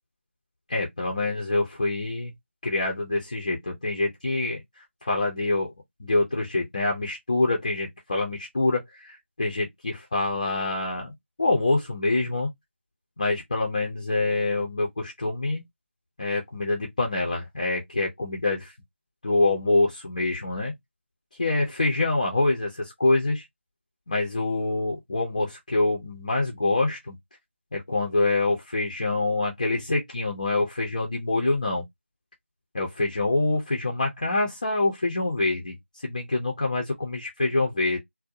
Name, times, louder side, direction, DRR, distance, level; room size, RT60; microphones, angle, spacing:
voice 1, 0.7-2.3 2.6-5.7 6.0-11.1 11.4-12.5 13.2-15.6 16.2-18.7 19.2-20.7 21.4-23.5 24.1-27.1 27.7-31.8 32.7-35.7 36.0-38.0, left 2 dB, 35° left, 0.6 m, -26 dB
2.5 x 2.2 x 2.6 m
figure-of-eight pair, 165°, 7 cm